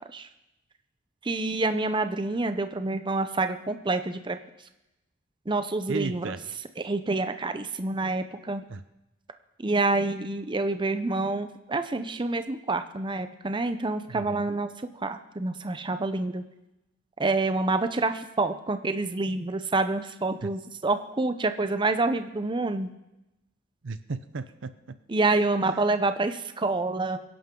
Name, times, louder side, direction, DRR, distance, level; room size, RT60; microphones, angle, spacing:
voice 1, 1.2-4.4 5.5-6.2 6.8-8.6 9.6-16.4 17.2-22.9 25.1-27.2, right 3 dB, 25° right, 9 dB, 0.7 m, -27 dB
voice 2, 5.9-6.4 8.7-8.8 14.1-14.5 20.4-20.5 23.8-25.0, right 3 dB, 65° right, 12 dB, 0.6 m, -35 dB
23.5 x 11.0 x 3.8 m, 0.95 s
head